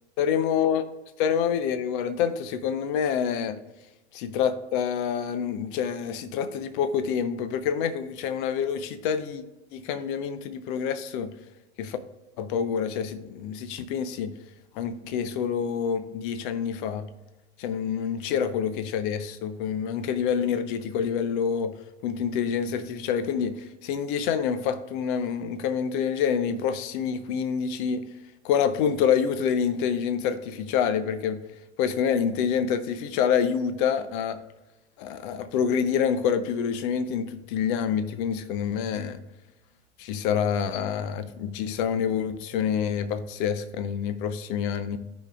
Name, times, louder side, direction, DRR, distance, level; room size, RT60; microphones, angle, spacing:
voice 1, 0.2-0.8 1.2-3.6 4.1-9.4 9.7-11.3 11.8-12.0 12.4-14.3 14.7-17.1 17.6-21.7 22.0-28.0 28.4-31.4 31.8-34.4 35.0-39.2 40.0-45.0, left 7 dB, 50° left, 0.8 m, -27 dB
15.0 x 5.2 x 2.5 m
figure-of-eight pair, 90°, 33 cm